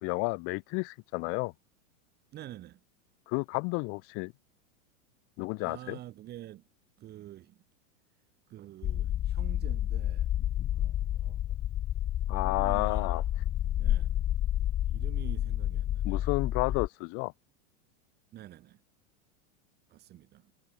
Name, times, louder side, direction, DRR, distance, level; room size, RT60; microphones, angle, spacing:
voice 1, 0.0-1.5 3.3-4.3 5.4-6.0 12.3-13.2 16.0-17.3, left 31 dB, 35° left, 2.5 m, -31 dB
voice 2, 2.3-2.8 5.6-6.6 7.0-7.6 8.5-10.3 10.8-11.6 12.3-13.2 13.8-14.1 14.9-16.3 18.3-18.8 19.9-20.5, right 14 dB, 25° right, 7.8 m, -48 dB
sound 1, 8.8-16.9, left 12 dB, 10° left, 0.6 m, -30 dB
supercardioid pair, 170°, 40 cm